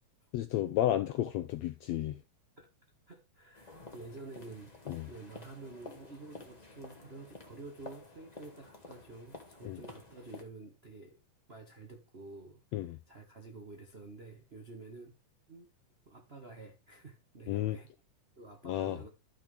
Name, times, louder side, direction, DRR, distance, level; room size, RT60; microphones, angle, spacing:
voice 1, 0.3-2.2 4.9-5.1 9.6-9.8 12.7-13.0 17.5-17.8 18.6-19.0, left 13 dB, 80° left, 1.5 m, -32 dB
voice 2, 3.1-4.7 5.0-11.2 11.5-15.1 15.5-15.7 16.1-17.9 18.4-19.1, right 3 dB, 80° right, 0.5 m, -50 dB
sound 1, 3.5-10.4, left 2 dB, 25° left, 1.0 m, -51 dB
13.5 x 5.9 x 3.4 m
omnidirectional pair, 3.7 m